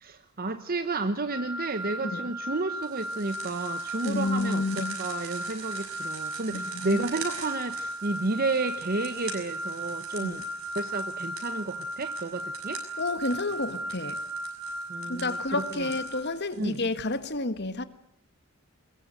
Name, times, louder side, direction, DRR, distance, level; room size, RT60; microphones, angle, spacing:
voice 1, 0.0-10.4 10.7-12.8 14.9-15.9 16.6-16.8, right 3 dB, 45° right, 1.0 m, -31 dB
sound 1, 1.3-16.2, right 1 dB, ahead, 4.2 m, -36 dB
voice 2, 2.0-2.3 4.0-5.0 6.5-7.1 10.2-10.4 13.0-14.2 15.1-17.8, left 2 dB, 50° left, 1.8 m, -30 dB
sound 2, 2.8-17.1, right 6 dB, 80° right, 7.2 m, -45 dB
22.5 x 22.0 x 9.1 m
head